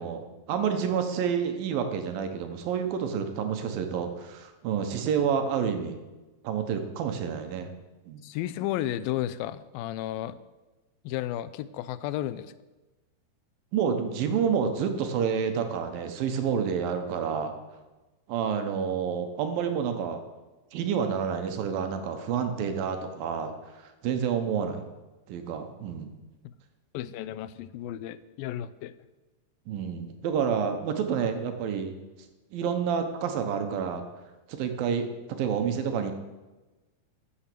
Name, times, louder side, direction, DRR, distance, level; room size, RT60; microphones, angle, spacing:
voice 1, 0.0-6.0 6.4-7.7 8.1-8.2 13.7-17.5 18.3-20.2 20.7-24.8 25.3-26.1 29.7-32.0 32.5-34.0 34.5-36.1, right 7 dB, 80° right, 7 dB, 2.9 m, -29 dB
voice 2, 8.2-10.4 11.0-12.5 26.9-28.9, left 12 dB, 85° left, 15 dB, 2.4 m, -33 dB
14.5 x 7.1 x 6.8 m, 1.1 s
omnidirectional pair, 4.1 m